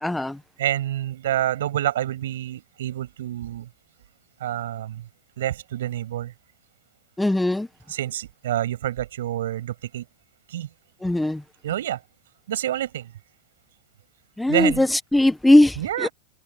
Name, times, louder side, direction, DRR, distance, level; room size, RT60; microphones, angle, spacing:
voice 1, 0.0-0.4 7.2-7.7 11.0-11.4 14.4-16.1, left 1 dB, 5° left, 0.6 m, -19 dB
voice 2, 0.6-3.7 4.4-5.1 5.4-6.3 7.9-10.0 10.5-10.7 11.6-12.0 12.5-13.1 14.5-14.8 15.8-16.1, right 12 dB, 90° right, 6.3 m, -27 dB
supercardioid pair, 165°, 0 cm